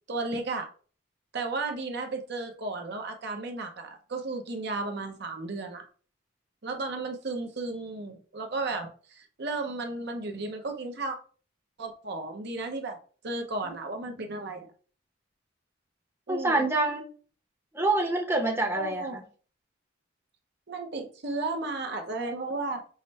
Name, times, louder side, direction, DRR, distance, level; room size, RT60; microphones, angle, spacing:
voice 1, 0.1-0.7 1.3-5.9 6.6-11.2 11.8-13.0 13.2-14.7 16.3-16.7 18.7-19.2 20.7-22.9, right 3 dB, 55° right, 0.6 m, -34 dB
voice 2, 16.3-17.0 17.7-19.2, right 2 dB, 10° right, 0.7 m, -26 dB
4.9 x 2.1 x 4.0 m
head